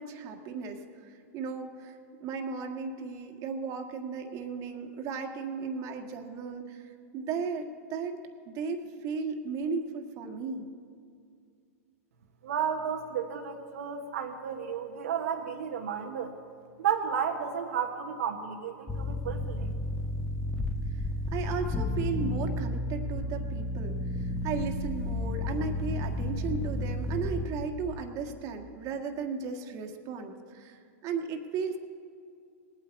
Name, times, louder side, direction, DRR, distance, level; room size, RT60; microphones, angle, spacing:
voice 1, 0.0-8.2 8.5-10.7 20.9-21.0 21.3-31.8, right 5 dB, 40° right, 4 dB, 1.7 m, -35 dB
voice 2, 12.4-16.3 16.8-19.7, right 8 dB, 70° right, 2 dB, 1.3 m, -32 dB
sound 1, 18.9-27.5, left 1 dB, 5° left, 1.1 m, -32 dB
19.5 x 9.1 x 8.2 m, 2.3 s
hypercardioid pair, 105°, 8 cm